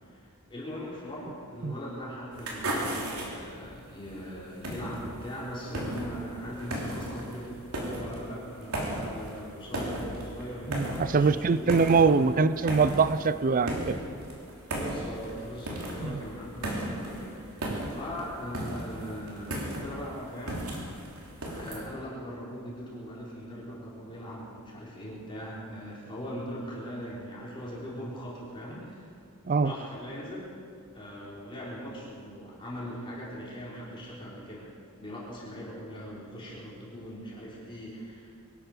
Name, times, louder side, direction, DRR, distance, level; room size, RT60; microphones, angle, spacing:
voice 1, 0.1-12.4 14.7-20.6 21.5-29.1 29.6-30.5 30.9-34.7 35.0-38.3, equal, 25° left, -6 dB, 4.0 m, -40 dB
sound 1, 2.3-21.8, right 1 dB, 75° right, 3.2 m, -36 dB
voice 2, 10.7-13.9 16.0-16.2 29.5-29.7, right 4 dB, 40° right, 14 dB, 0.5 m, -23 dB
23.0 x 12.5 x 5.0 m, 2.2 s
head